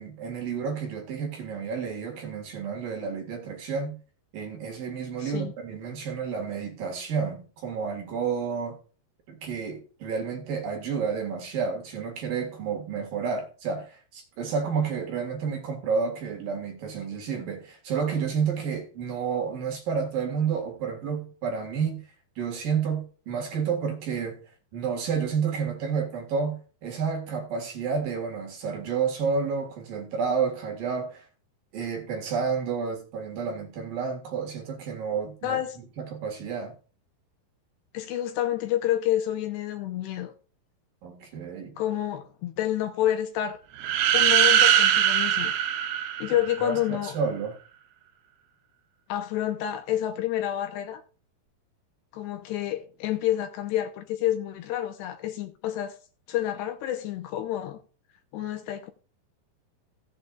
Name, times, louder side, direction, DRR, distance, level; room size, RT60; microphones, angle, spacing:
voice 1, 0.0-4.0 4.3-8.8 9.3-22.0 22.4-24.4 24.7-31.3 31.7-35.6 36.0-36.7 41.0-41.8 46.3-47.6, right 6 dB, 55° right, 3.1 m, -30 dB
voice 2, 5.2-5.5 35.4-35.8 37.9-40.3 41.8-43.6 44.1-45.5 46.2-47.2 49.1-51.0 52.1-56.0 56.3-57.8 58.3-58.9, left 12 dB, 75° left, 2.9 m, -29 dB
sound 1, 43.8-46.7, right 10 dB, 75° right, 2.4 m, -21 dB
16.5 x 8.1 x 2.5 m
omnidirectional pair, 5.3 m